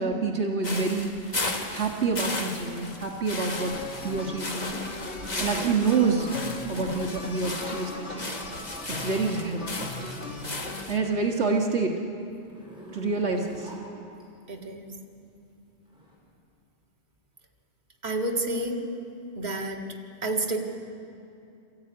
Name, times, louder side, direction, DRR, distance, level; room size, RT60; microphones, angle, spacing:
voice 1, 0.0-3.7 4.0-4.8 5.4-6.3 6.7-8.3 8.9-9.6 10.9-11.9 12.9-13.7, right 4 dB, 70° right, 0 dB, 1.9 m, -27 dB
sound 1, 0.6-11.0, left 2 dB, 40° left, 1.9 m, -35 dB
sound 2, 3.5-10.9, left 3 dB, 75° left, 2.1 m, -38 dB
Zipper (clothing), 6.7-11.2 11.6-14.2 15.8-16.2, equal, 5° right, 5.6 m, -48 dB
voice 2, 14.5-14.9 18.0-18.8 19.4-19.8 20.2-20.6, right 2 dB, 40° right, 1 dB, 2.1 m, -29 dB
27.5 x 14.0 x 9.6 m, 2.6 s
omnidirectional pair, 1.2 m